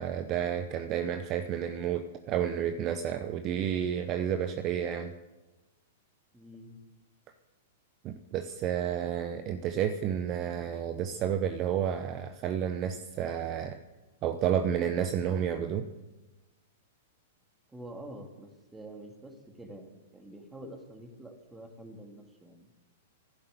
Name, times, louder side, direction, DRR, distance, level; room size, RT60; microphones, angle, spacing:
voice 1, 0.0-5.1 8.0-13.8 14.2-15.9, right 9 dB, 40° right, 9 dB, 0.8 m, -31 dB
voice 2, 6.3-6.8 17.7-22.7, right 1 dB, 10° right, 4 dB, 2.3 m, -47 dB
11.5 x 11.0 x 8.3 m, 1.1 s
hypercardioid pair, 115°, 0 cm